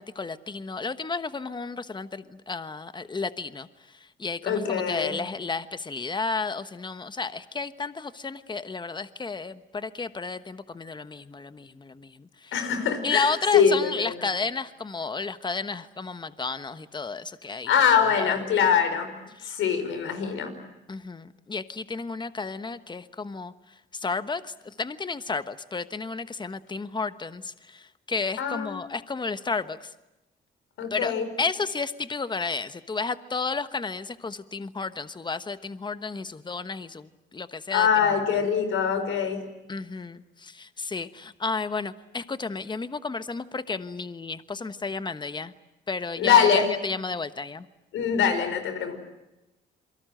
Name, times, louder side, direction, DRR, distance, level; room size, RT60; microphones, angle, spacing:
voice 1, 0.0-3.7 4.2-12.5 13.0-17.7 18.0-18.3 19.4-19.5 20.9-23.5 23.9-29.9 30.9-37.9 39.7-45.5 45.9-47.6, left 4 dB, 20° left, 12 dB, 1.2 m, -32 dB
voice 2, 4.4-5.1 12.5-14.2 17.6-19.1 19.4-20.5 28.4-28.8 30.8-31.3 37.7-39.4 46.2-46.7 47.9-49.0, left 7 dB, 80° left, 8 dB, 5.3 m, -23 dB
28.0 x 23.5 x 7.9 m, 0.96 s
cardioid pair, 90°, 20 cm